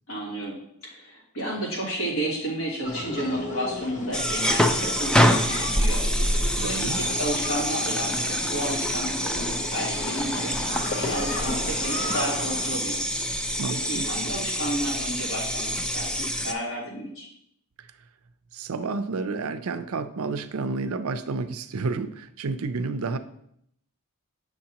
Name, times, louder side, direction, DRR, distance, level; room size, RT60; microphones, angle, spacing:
voice 1, 0.1-0.6 0.8-6.0 6.3-10.5 10.9-13.0 13.8-17.3, right 1 dB, 80° left, -5 dB, 3.2 m, -32 dB
sound 1, 2.9-12.8, left 2 dB, 35° left, 0.8 m, -35 dB
sound 2, 4.1-16.5, equal, 5° left, 0.4 m, -26 dB
voice 2, 6.6-7.0 13.6-14.1 17.8-17.9 18.5-23.2, right 4 dB, 70° right, 10 dB, 0.5 m, -30 dB
8.8 x 6.4 x 2.9 m, 0.72 s
head